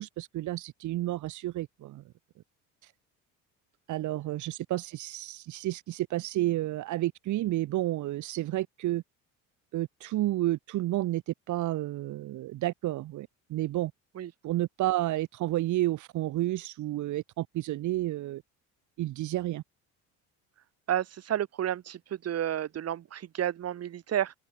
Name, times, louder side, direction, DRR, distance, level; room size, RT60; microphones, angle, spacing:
voice 1, 0.0-2.0 2.8-2.9 3.9-9.0 9.7-13.9 14.4-18.4 19.0-19.6, right 15 dB, 65° right, 4.1 m, -31 dB
voice 2, 20.9-24.3, right 11 dB, 50° right, 6.7 m, -31 dB
open air
cardioid pair, 120°, 33 cm